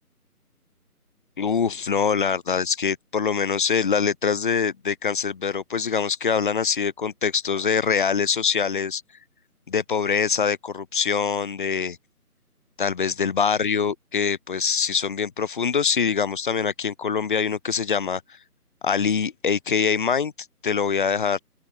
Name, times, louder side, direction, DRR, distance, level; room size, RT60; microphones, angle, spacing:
voice 1, 1.4-9.0 9.7-12.0 12.8-18.2 18.8-20.3 20.6-21.4, left 6 dB, 30° left, 2.6 m, -24 dB
open air
figure-of-eight pair, 160°, 46 cm